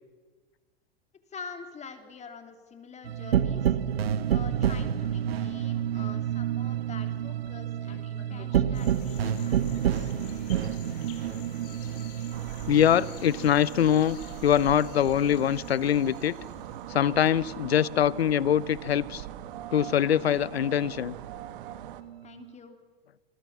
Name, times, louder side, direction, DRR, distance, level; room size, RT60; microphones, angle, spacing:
voice 1, 1.3-3.7 4.3-10.1 21.7-21.9 22.2-22.8, left 5 dB, 20° left, 6 dB, 3.3 m, -46 dB
sound 1, 3.0-16.0 16.3-18.2 18.6-20.3 20.7-22.5, right 9 dB, 80° right, 1.4 m, -30 dB
Desert Atmos Post Rain, 8.7-16.9, left 8 dB, 60° left, 6.1 m, -49 dB
sound 2, 12.3-22.0, right 12 dB, 60° right, 2.1 m, -41 dB
voice 2, 12.7-14.2 14.4-16.3 16.9-19.2 19.7-21.2, left 9 dB, 85° left, 21 dB, 0.9 m, -23 dB
28.5 x 21.5 x 7.3 m, 1.4 s
hypercardioid pair, 105°, 30 cm